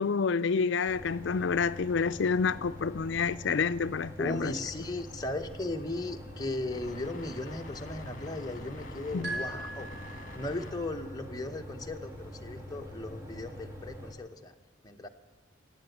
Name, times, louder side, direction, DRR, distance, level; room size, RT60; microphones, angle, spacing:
voice 1, 0.0-4.5 9.1-9.3, left 5 dB, 60° left, 0.4 m, -28 dB
sound 1, 0.8-14.1, equal, 15° right, 1.8 m, -45 dB
voice 2, 4.2-14.5 14.8-15.1, left 2 dB, 20° left, 0.8 m, -37 dB
sound 2, 4.8-11.0, left 2 dB, 40° left, 1.6 m, -49 dB
sound 3, 9.2-10.8, right 2 dB, 55° right, 5.0 m, -39 dB
16.0 x 7.8 x 9.2 m
head